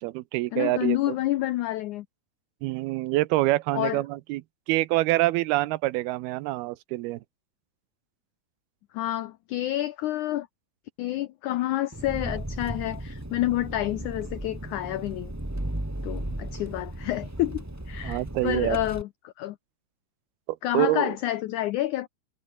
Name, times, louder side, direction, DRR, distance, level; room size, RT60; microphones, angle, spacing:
voice 1, 0.0-1.0 2.6-4.4 4.7-7.2 18.0-18.8 20.7-21.1, right 18 dB, 85° right, 2.7 m, -26 dB
voice 2, 0.5-2.1 3.7-4.0 8.9-10.5 11.0-15.3 16.0-19.6 20.6-22.1, left 14 dB, 90° left, 1.7 m, -29 dB
Engine, 11.9-19.0, right 1 dB, 10° right, 0.8 m, -35 dB
omnidirectional pair, 4.4 m